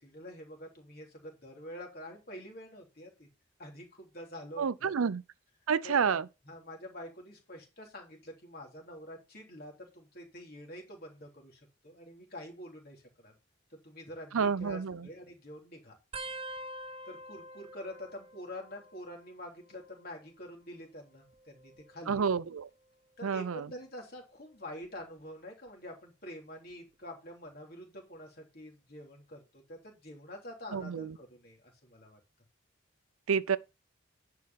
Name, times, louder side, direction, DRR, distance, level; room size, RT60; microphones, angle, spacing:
voice 1, 0.0-3.3 3.6-4.9 5.8-13.3 13.8-15.9 17.0-22.3 23.2-32.2, left 1 dB, 45° left, 3.3 m, -47 dB
voice 2, 4.6-5.2 5.7-6.3 14.3-15.1 22.1-22.7 23.2-23.7 30.7-31.2 33.3-33.6, right 6 dB, 90° right, 0.5 m, -29 dB
sound 1, 16.1-19.3 19.6-20.2 21.2-22.7 23.3-23.6 24.8-25.2 26.7-26.8, right 1 dB, 25° right, 0.8 m, -47 dB
10.5 x 4.8 x 5.7 m
head